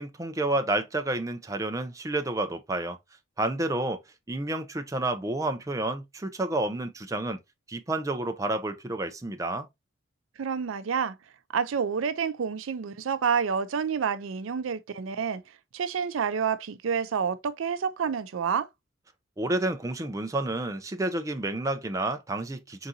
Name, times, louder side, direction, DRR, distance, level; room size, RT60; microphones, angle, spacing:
voice 1, 0.0-3.0 3.4-4.0 4.3-7.4 7.7-9.7 19.4-22.9, right 2 dB, 15° right, 0.4 m, -30 dB
voice 2, 10.4-11.2 11.5-15.4 15.7-18.7, right 6 dB, 90° right, 0.4 m, -28 dB
3.9 x 3.7 x 2.7 m
head